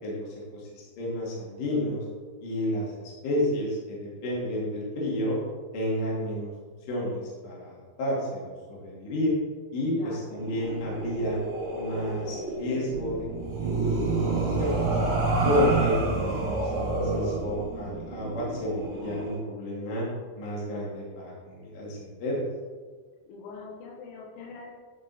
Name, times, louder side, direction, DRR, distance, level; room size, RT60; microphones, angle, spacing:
voice 1, 0.0-2.0 2.4-2.9 3.2-5.4 5.7-6.5 6.9-9.4 9.7-11.4 11.7-14.9 15.4-16.0 16.3-20.0 20.4-22.4, left 1 dB, 50° left, -5 dB, 3.1 m, -31 dB
voice 2, 9.9-10.3 23.3-24.7, left 4 dB, 90° left, -2 dB, 4.2 m, -43 dB
sound 1, 10.4-19.3, right 3 dB, 60° right, 3.7 m, -29 dB
11.0 x 5.2 x 4.1 m, 1.5 s
omnidirectional pair, 6.0 m